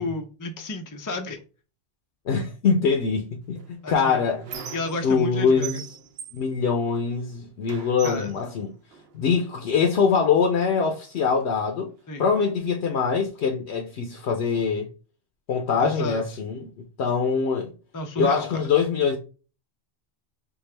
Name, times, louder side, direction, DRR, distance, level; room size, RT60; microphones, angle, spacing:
voice 1, 0.0-1.4 3.8-4.2 4.7-5.8 8.0-8.3 12.1-12.3 15.8-16.2 17.9-18.6, left 2 dB, 35° left, 0.3 m, -32 dB
voice 2, 2.3-3.6 3.9-4.6 5.0-5.8 6.3-8.7 9.1-11.9 12.2-14.9 15.5-16.7 17.0-17.7 18.2-19.2, left 5 dB, 75° left, 0.9 m, -23 dB
Squeak, 3.5-5.3 5.6-7.3 7.7-9.4 10.1-10.3 10.6-11.6, right 7 dB, 70° right, 0.8 m, -41 dB
4.5 x 2.4 x 3.2 m
omnidirectional pair, 1.1 m